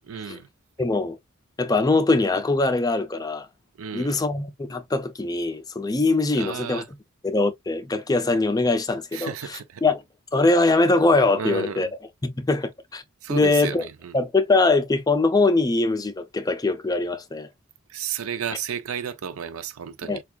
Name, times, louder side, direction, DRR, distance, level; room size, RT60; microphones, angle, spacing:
voice 1, 0.1-0.5 3.8-4.2 6.4-6.9 9.1-9.8 11.4-11.9 13.2-14.1 17.9-20.2, right 7 dB, 85° right, 0.5 m, -32 dB
voice 2, 0.8-1.2 1.6-3.5 3.9-6.8 7.2-10.0 10.3-11.9 12.2-13.0 13.3-13.8 14.1-17.5 20.1-20.2, left 3 dB, 15° left, 0.4 m, -22 dB
4.5 x 2.3 x 2.2 m
head